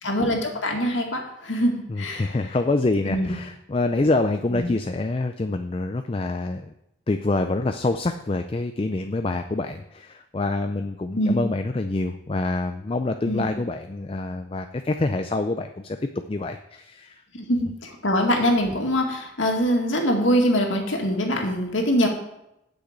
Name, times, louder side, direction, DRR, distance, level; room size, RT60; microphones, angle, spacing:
voice 1, 0.0-2.4 3.1-3.3 4.5-4.7 11.1-11.4 13.3-13.5 17.3-22.1, equal, 80° left, 1 dB, 2.1 m, -23 dB
voice 2, 1.9-6.6 7.1-16.0 16.3-17.2, left 2 dB, 30° left, 7 dB, 0.4 m, -26 dB
8.5 x 6.3 x 8.0 m, 0.85 s
head